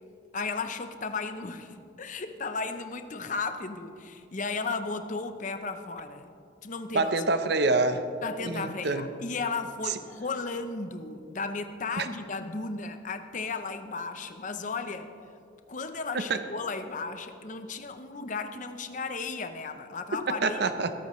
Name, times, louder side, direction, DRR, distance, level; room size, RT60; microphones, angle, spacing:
voice 1, 0.3-6.3 6.6-7.1 8.2-15.1 15.7-20.6, left 4 dB, 40° left, 8 dB, 0.7 m, -35 dB
voice 2, 6.9-8.0 8.4-9.1 9.9-10.0 12.0-12.1 16.1-16.4 20.4-20.9, right 3 dB, 55° right, 9 dB, 0.7 m, -26 dB
21.0 x 12.0 x 3.1 m, 2.5 s
head